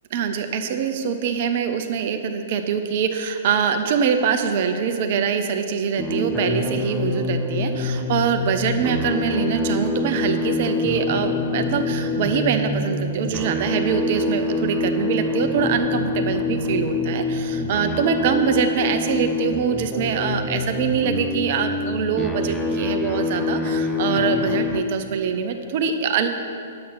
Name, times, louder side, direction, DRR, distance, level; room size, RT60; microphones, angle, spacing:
voice 1, 0.1-26.3, right 6 dB, 50° right, 7 dB, 0.7 m, -24 dB
sound 1, 6.0-24.8, left 2 dB, 5° left, 0.7 m, -25 dB
10.0 x 7.7 x 5.8 m, 2.4 s
figure-of-eight pair, 110°, 0 cm